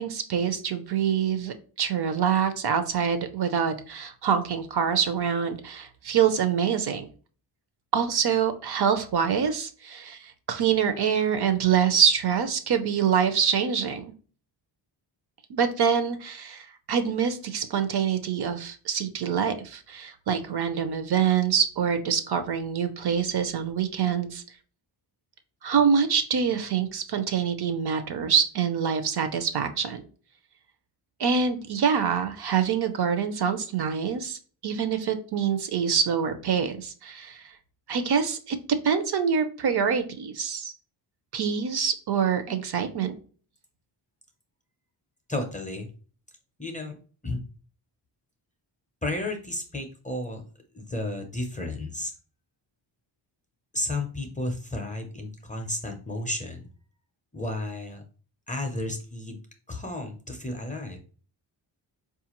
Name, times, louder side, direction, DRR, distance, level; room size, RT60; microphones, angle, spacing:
voice 1, 0.0-7.0 7.9-14.1 15.5-24.4 25.6-30.0 31.2-37.5 37.9-40.7 41.3-43.1, right 7 dB, 60° right, 9 dB, 0.5 m, -25 dB
voice 2, 45.3-45.9 46.6-46.9 47.2-47.4 49.0-50.4 50.7-52.1 53.7-56.7 57.3-58.0 58.5-59.4 59.7-61.0, left 1 dB, 15° left, 4 dB, 0.4 m, -32 dB
4.5 x 2.4 x 2.9 m, 0.40 s
wide cardioid pair, 170°, 46 cm